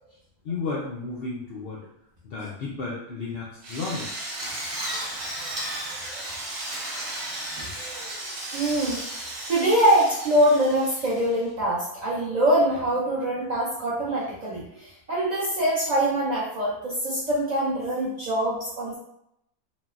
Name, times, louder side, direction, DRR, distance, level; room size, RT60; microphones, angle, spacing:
voice 1, 0.4-1.8 2.2-4.2, left 4 dB, 80° left, -5 dB, 0.5 m, -33 dB
Drill, 3.6-11.5, right 1 dB, 60° right, 0.8 m, -34 dB
voice 2, 6.7-7.1 7.6-8.2 8.5-19.0, right 1 dB, 90° right, -6 dB, 0.3 m, -24 dB
3.8 x 2.0 x 2.4 m, 0.79 s
omnidirectional pair, 1.6 m